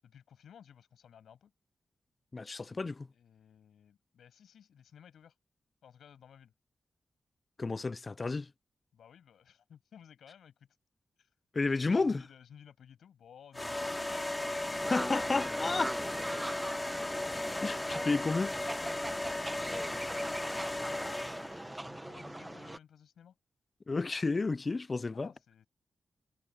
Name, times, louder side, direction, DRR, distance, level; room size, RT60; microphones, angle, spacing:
voice 1, 0.0-1.5 3.1-5.4 5.8-6.5 8.9-10.7 11.2-11.3 11.8-14.9 16.1-16.8 19.4-23.4 25.1-25.7, left 8 dB, 85° left, 7.8 m, -57 dB
voice 2, 2.3-3.1 7.6-8.5 11.5-12.2 14.9-16.0 17.6-18.6 23.9-25.3, left 3 dB, 40° left, 0.5 m, -31 dB
sound 1, 13.5-21.7, left 1 dB, 20° left, 3.6 m, -36 dB
sound 2, 14.8-22.8, right 1 dB, 15° right, 1.1 m, -42 dB
cardioid pair, 50°, 0 cm